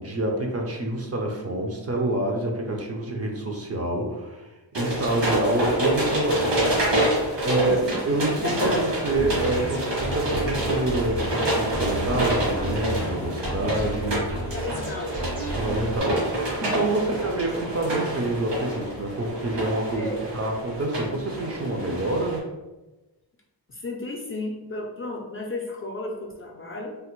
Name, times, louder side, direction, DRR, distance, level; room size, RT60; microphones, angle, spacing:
voice 1, 0.0-7.1 7.4-14.3 15.6-22.4, right 2 dB, 35° right, 1 dB, 0.4 m, -27 dB
sound 1, 4.7-22.4, right 1 dB, 75° right, 1.3 m, -28 dB
voice 2, 7.6-8.0 8.3-8.8 14.5-15.2 16.9-17.3 19.9-20.2 23.7-26.9, left 2 dB, 30° left, -1 dB, 0.4 m, -33 dB
sound 2, 9.1-16.0, right 1 dB, 90° right, 1.4 m, -32 dB
3.3 x 2.1 x 2.9 m, 1.1 s
wide cardioid pair, 115°, 43 cm